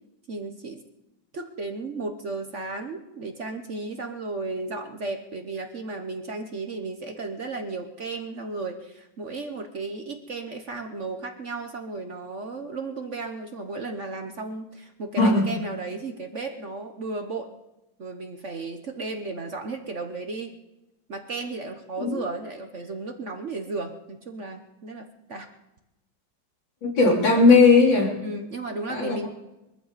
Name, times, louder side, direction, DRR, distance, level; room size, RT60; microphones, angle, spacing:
voice 1, 0.3-0.8 1.3-17.5 18.0-20.5 21.1-25.5 28.2-29.3, right 3 dB, 45° right, 5 dB, 1.2 m, -34 dB
voice 2, 26.8-28.1 28.9-29.3, left 3 dB, 80° left, -2 dB, 4.4 m, -18 dB
23.0 x 14.0 x 4.1 m, 0.96 s
omnidirectional pair, 2.1 m